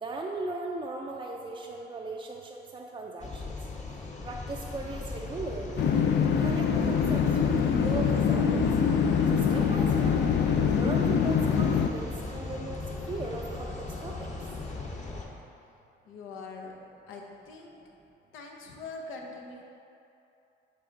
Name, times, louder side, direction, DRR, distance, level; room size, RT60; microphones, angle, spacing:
voice 1, 0.0-3.5 4.2-5.9 6.4-8.6 9.3-10.2 10.6-12.8 13.1-14.1, right 2 dB, 25° right, -1 dB, 0.4 m, -38 dB
sound 1, 3.2-15.2, left 3 dB, 35° left, 0.9 m, -38 dB
sound 2, 5.8-11.9, left 7 dB, 60° left, 0.4 m, -24 dB
voice 2, 16.1-16.8 17.1-17.8 18.3-19.6, left 3 dB, 90° left, 1 dB, 0.8 m, -43 dB
7.8 x 3.4 x 3.9 m, 2.8 s
cardioid pair, 90°, 20 cm